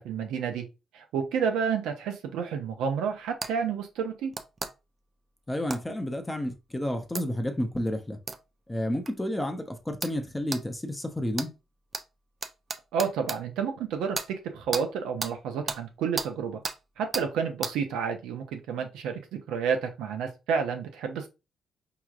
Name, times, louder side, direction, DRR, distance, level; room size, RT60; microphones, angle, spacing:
voice 1, 0.1-0.7 0.9-4.3 12.9-16.6 17.0-21.3, right 6 dB, 90° right, 0.7 m, -30 dB
sound 1, 3.4-3.5 4.3-4.7 5.7-5.8 7.1-7.2 8.3-8.4 9.1-9.2 10.0-10.2 10.5-10.6 11.3-11.5 11.9-12.0 12.4-13.4 14.1-14.3 14.7-14.8 15.2-15.3 15.7-15.8 16.2-16.3 16.6-16.8 17.1-17.3 17.6-17.7, right 3 dB, 30° right, 0.5 m, -33 dB
voice 2, 5.5-8.2 8.7-11.5, left 1 dB, 10° left, 0.7 m, -31 dB
4.7 x 2.9 x 2.4 m
cardioid pair, 90°, 0 cm